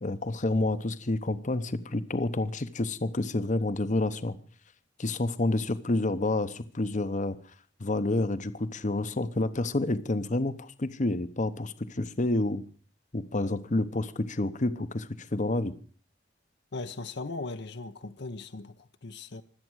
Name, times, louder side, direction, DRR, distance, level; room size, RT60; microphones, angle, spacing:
voice 1, 0.0-4.4 5.0-7.4 7.8-12.6 13.1-15.7, left 2 dB, 40° left, 0.9 m, -29 dB
voice 2, 16.7-19.4, left 3 dB, 65° left, 0.9 m, -38 dB
24.5 x 8.6 x 6.3 m
head